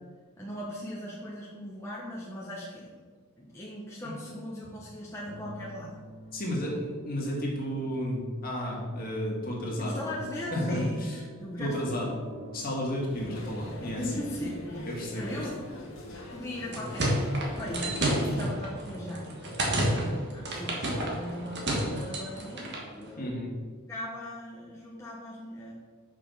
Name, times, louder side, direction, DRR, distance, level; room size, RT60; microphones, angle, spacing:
voice 1, 0.4-3.0 3.4-5.9 9.8-11.1 11.4-11.9 13.1-13.4 13.8-14.9 15.1-15.6 16.1-23.4 23.9-25.7, left 1 dB, 15° left, -5 dB, 1.0 m, -39 dB
sound 1, 5.2-15.8, equal, 70° right, 1.7 m, -48 dB
voice 2, 6.3-10.0 10.5-11.2 11.6-12.1 12.5-14.0 14.9-15.3 23.2-23.5, equal, 40° left, -3 dB, 2.0 m, -32 dB
sound 2, 13.1-18.5, left 1 dB, 60° left, 1.7 m, -42 dB
sound 3, 16.5-22.9, right 1 dB, 50° right, 1.5 m, -30 dB
6.6 x 5.4 x 5.5 m, 1.5 s
head